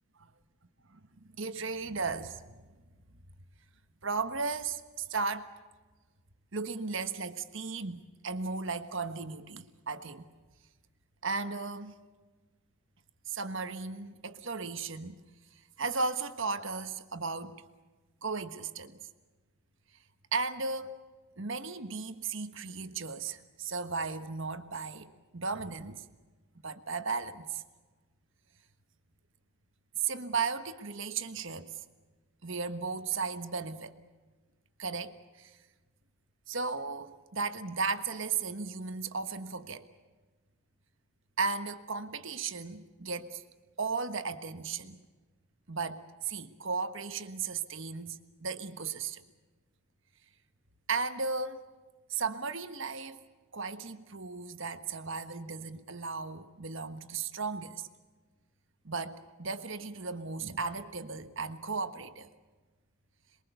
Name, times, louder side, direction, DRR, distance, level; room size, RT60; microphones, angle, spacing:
voice 1, 0.9-2.6 4.0-5.5 6.5-10.3 11.2-12.0 13.3-15.2 15.8-17.6 18.2-19.0 20.3-21.0 21.4-26.0 26.6-27.6 30.0-31.8 32.4-34.0 34.8-35.6 36.5-39.9 41.4-43.4 43.8-45.0 45.7-49.2 50.9-51.6 52.1-53.2 53.5-57.9 58.8-62.3, right 4 dB, 55° right, 10 dB, 1.4 m, -35 dB
27.0 x 22.5 x 6.9 m, 1.3 s
head